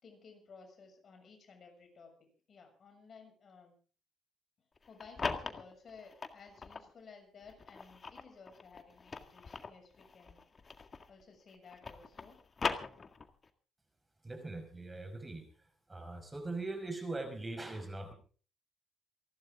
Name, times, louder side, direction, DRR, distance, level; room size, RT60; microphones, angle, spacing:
voice 1, 0.0-3.7 4.9-10.4 11.1-12.4, left 5 dB, 50° left, 4 dB, 6.7 m, -56 dB
sound 1, 4.8-6.9 7.5-11.2 11.5-13.5, left 4 dB, 35° left, 1.9 m, -40 dB
voice 2, 14.2-15.5 15.9-18.1, right 2 dB, 20° right, 6 dB, 5.4 m, -41 dB
28.0 x 12.0 x 3.7 m, 0.40 s
cardioid pair, 90°, 0 cm